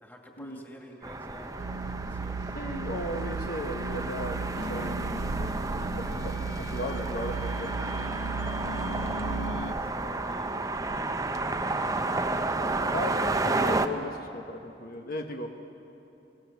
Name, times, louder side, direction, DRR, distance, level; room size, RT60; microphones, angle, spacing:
voice 1, 0.0-2.4 9.6-10.6 11.0-11.7, left 1 dB, 10° left, 0 dB, 2.3 m, -48 dB
sound 1, 1.0-13.9, right 2 dB, 20° right, 0.7 m, -31 dB
sound 2, 1.6-9.6, right 5 dB, 80° right, 0.4 m, -36 dB
voice 2, 2.5-8.1 12.9-15.5, left 1 dB, 55° left, 3 dB, 1.1 m, -37 dB
sound 3, 4.5-9.7, left 3 dB, 70° left, 0.6 m, -41 dB
24.5 x 18.0 x 6.8 m, 2.9 s
head